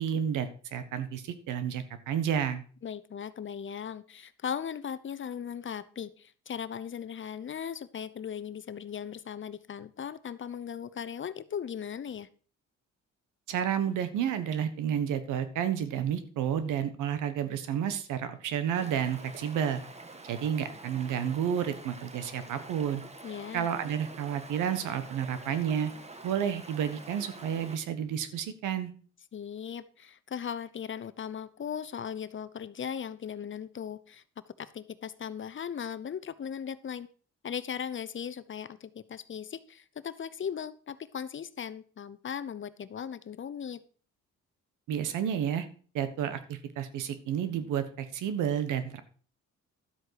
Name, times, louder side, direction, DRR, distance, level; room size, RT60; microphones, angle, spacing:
voice 1, 0.0-2.6 13.5-19.8 20.2-23.0 23.5-25.9 26.2-28.9 44.9-45.7 45.9-49.0, right 9 dB, 85° right, 11 dB, 1.4 m, -31 dB
voice 2, 2.8-12.3 23.2-23.7 29.3-34.2 34.6-37.1 37.4-43.8, left 8 dB, 40° left, 15 dB, 0.8 m, -38 dB
Stream, 18.7-27.8, right 2 dB, 20° right, 1.4 m, -47 dB
12.0 x 8.0 x 4.7 m, 0.41 s
cardioid pair, 90°, 30 cm